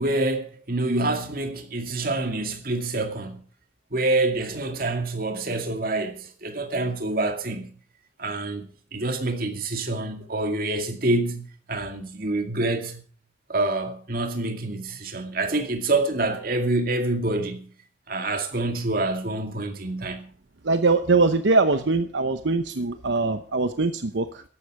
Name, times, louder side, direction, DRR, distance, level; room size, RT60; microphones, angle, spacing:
voice 1, 0.0-3.4 3.9-7.7 8.2-13.0 13.5-17.7 18.1-20.3, right 2 dB, 50° right, 2.3 m, -27 dB
voice 2, 20.6-24.4, right 3 dB, 80° right, 0.9 m, -22 dB
14.5 x 12.0 x 4.8 m
head